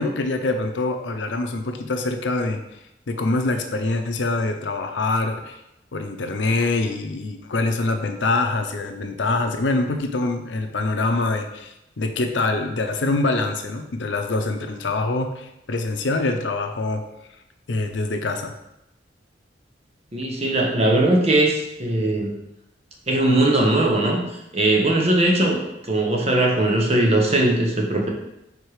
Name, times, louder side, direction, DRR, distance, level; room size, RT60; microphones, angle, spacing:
voice 1, 0.0-2.6 3.1-5.6 5.9-17.0 17.7-18.5, left 2 dB, 85° left, 6 dB, 0.7 m, -24 dB
voice 2, 20.1-22.3 23.1-24.2 24.5-28.1, right 1 dB, 35° right, 0 dB, 1.0 m, -20 dB
4.9 x 4.5 x 4.8 m, 0.86 s
head